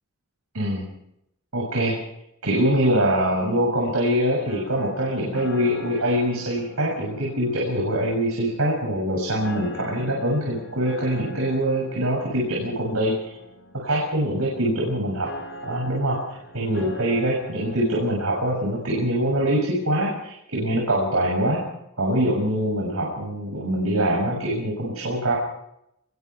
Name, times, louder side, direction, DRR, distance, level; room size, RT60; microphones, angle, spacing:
voice 1, 0.5-0.9 1.5-2.0 2.4-13.3 13.7-15.3 15.6-21.6 22.0-25.4, right 1 dB, 90° right, -1 dB, 7.1 m, -24 dB
sound 1, 4.5-19.4, left 1 dB, 55° left, 4.9 m, -42 dB
27.0 x 22.0 x 4.7 m, 0.80 s
head